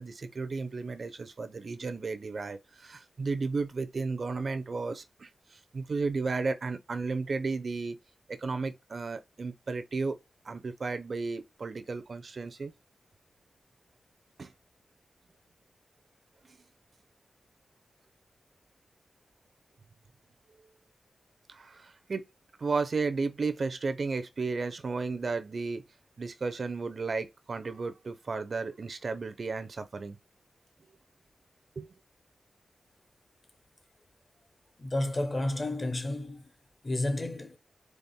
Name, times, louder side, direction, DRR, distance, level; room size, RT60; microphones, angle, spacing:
voice 1, 0.0-8.0 8.3-10.2 10.4-12.7 14.4-14.5 21.5-22.2 22.6-25.8 26.2-30.2 31.8-31.9, right 4 dB, 45° right, 0.5 m, -33 dB
voice 2, 34.8-36.4 36.8-37.6, left 1 dB, 25° left, 0.8 m, -31 dB
4.2 x 3.3 x 3.6 m
wide cardioid pair, 160°, 0 cm